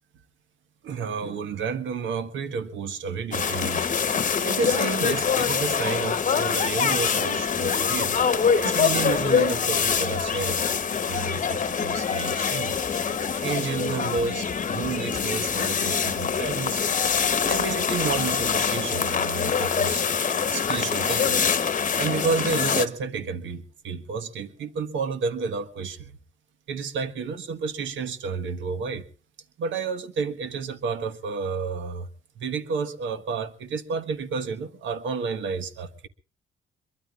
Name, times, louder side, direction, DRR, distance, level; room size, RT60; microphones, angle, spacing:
voice 1, 0.8-3.8 4.4-8.2 8.5-10.7 11.1-12.7 13.4-16.8 17.4-20.0 20.5-21.4 22.0-26.2 26.7-29.1 29.6-32.1 32.3-36.1, right 5 dB, 75° right, 1.5 m, -30 dB
sound 1, 3.3-22.9, left 6 dB, 40° left, 1.0 m, -24 dB
23.5 x 22.5 x 2.5 m
cardioid pair, 90°, 20 cm